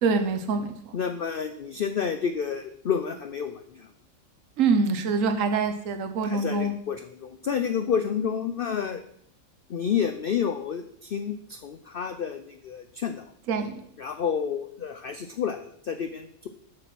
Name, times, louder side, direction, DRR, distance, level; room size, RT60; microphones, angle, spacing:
voice 1, 0.0-0.9 4.6-6.7 13.5-13.8, right 4 dB, 65° right, 7 dB, 1.3 m, -25 dB
voice 2, 0.9-3.9 6.2-9.0 9.7-13.3 14.0-16.5, left 7 dB, 60° left, 8 dB, 0.6 m, -30 dB
7.0 x 6.8 x 6.0 m, 0.68 s
omnidirectional pair, 1.5 m